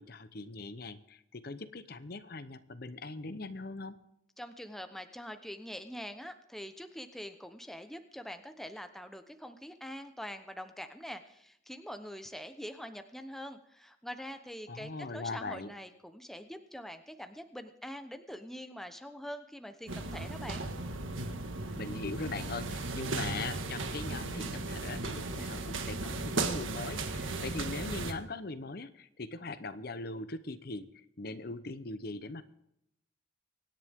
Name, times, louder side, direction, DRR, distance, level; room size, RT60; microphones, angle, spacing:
voice 1, 0.0-4.0 14.7-15.7 21.8-32.4, left 3 dB, 50° left, 12 dB, 0.8 m, -41 dB
voice 2, 4.4-20.6, equal, ahead, 7 dB, 0.9 m, -44 dB
sound 1, 19.9-28.1, right 3 dB, 85° right, 1.7 m, -36 dB
25.0 x 10.5 x 3.6 m, 0.80 s
head